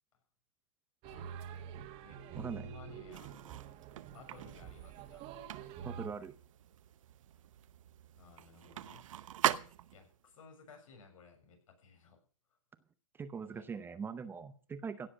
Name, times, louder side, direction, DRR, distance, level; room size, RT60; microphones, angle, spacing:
voice 1, 1.0-1.8 2.0-2.2 2.6-3.5 4.1-5.2 8.1-9.0 9.9-12.2 13.5-13.7, left 5 dB, 70° left, 3 dB, 7.1 m, -58 dB
sound 1, 1.0-6.1, right 7 dB, 35° right, 1.7 m, -47 dB
voice 2, 2.4-2.7 5.8-6.3 13.2-15.1, right 6 dB, 10° right, 12 dB, 0.6 m, -42 dB
sound 2, 3.1-10.2, right 11 dB, 70° right, 0.9 m, -41 dB
16.5 x 7.6 x 6.3 m, 0.41 s
hypercardioid pair, 140°, 17 cm